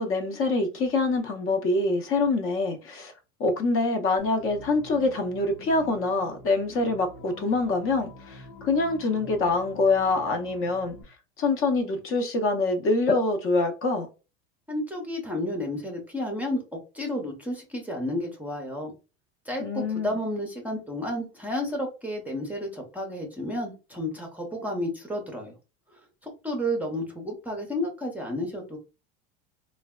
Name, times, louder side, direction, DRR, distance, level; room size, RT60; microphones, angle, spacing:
voice 1, 0.0-3.1 3.4-10.9 11.4-14.1 19.6-20.2, left 3 dB, 40° left, 0.7 m, -25 dB
sound 1, 4.2-11.0, left 1 dB, 75° left, 0.9 m, -46 dB
voice 2, 14.7-18.9 19.5-25.5 26.2-28.8, left 1 dB, 5° right, 0.6 m, -31 dB
3.2 x 2.2 x 2.3 m
supercardioid pair, 120°, 33 cm